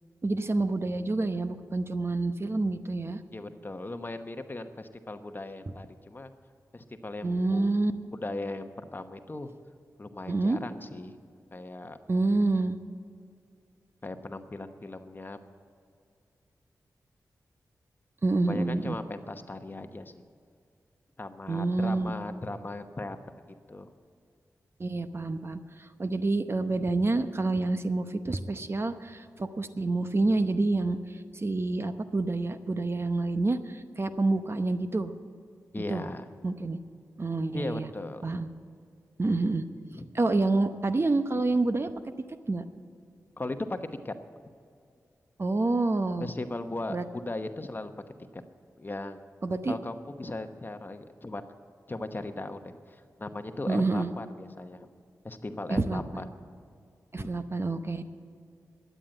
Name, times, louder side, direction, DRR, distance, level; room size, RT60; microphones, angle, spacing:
voice 1, 0.2-3.2 5.7-5.8 7.2-7.9 10.3-10.6 12.1-12.8 18.2-19.0 21.5-22.1 24.8-31.0 31.3-35.1 35.7-36.1 36.4-36.8 37.2-37.9 38.2-38.5 39.2-39.6 40.1-41.9 42.5-42.6 45.4-46.3 46.9-47.0 49.4-49.7 53.7-54.1 55.7-56.2 57.1-58.0, right 2 dB, 40° right, 10 dB, 0.8 m, -28 dB
voice 2, 3.3-6.3 6.7-7.7 8.1-9.5 10.0-11.2 11.5-12.0 14.0-15.4 18.5-20.2 21.2-23.2 23.7-23.9 35.7-36.3 37.5-38.2 39.9-40.0 43.4-43.8 44.0-44.2 46.2-47.9 48.3-48.4 48.8-49.2 49.7-51.4 51.9-54.9 55.2-56.3 57.1-57.3, left 2 dB, 30° left, 8 dB, 1.0 m, -38 dB
13.0 x 9.3 x 7.8 m, 2.4 s
cardioid pair, 50°, 6 cm